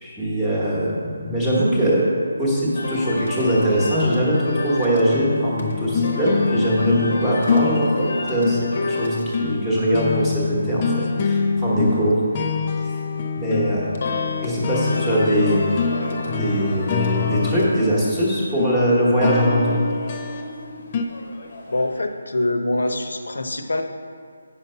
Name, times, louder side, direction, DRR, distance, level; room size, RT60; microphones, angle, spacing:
voice 1, 0.0-2.1 2.4-8.6 8.9-12.2 12.8-13.0 13.3-13.9 14.4-15.6 16.2-19.7, equal, 5° right, -7 dB, 1.0 m, -21 dB
sound 1, 2.7-22.0, left 2 dB, 35° left, 0.9 m, -33 dB
sound 2, 5.1-21.0, left 4 dB, 15° left, 0.3 m, -25 dB
voice 2, 21.7-23.8, left 2 dB, 80° left, 6 dB, 0.9 m, -24 dB
8.6 x 5.8 x 5.5 m, 2.2 s
hypercardioid pair, 180°, 0 cm